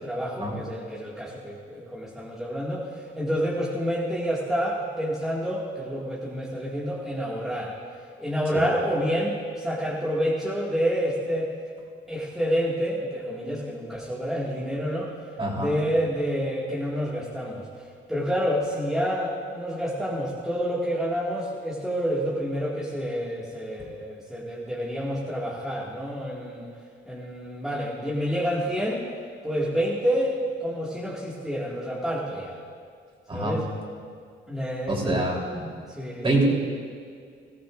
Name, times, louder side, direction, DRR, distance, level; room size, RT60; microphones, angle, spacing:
voice 1, 0.0-7.7 8.2-11.5 12.1-15.1 15.5-17.7 18.1-26.7 27.1-29.0 29.4-32.6 33.3-33.7 34.5-35.3 35.9-36.4, equal, ahead, -7 dB, 2.1 m, -28 dB
voice 2, 15.4-15.7 33.3-33.6 34.9-35.6 36.2-36.4, right 2 dB, 25° right, -2 dB, 3.6 m, -25 dB
20.0 x 14.5 x 2.6 m, 2.2 s
cardioid pair, 90°, 20 cm